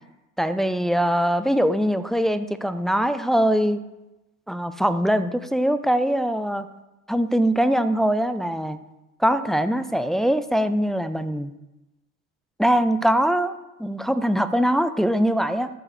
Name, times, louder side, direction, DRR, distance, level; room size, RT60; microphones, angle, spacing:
voice 1, 0.4-3.8 4.5-6.7 7.1-8.8 9.2-11.5 12.6-13.5 13.8-15.7, equal, ahead, 11 dB, 0.4 m, -22 dB
8.4 x 4.9 x 6.5 m, 0.98 s
hypercardioid pair, 65°, 42 cm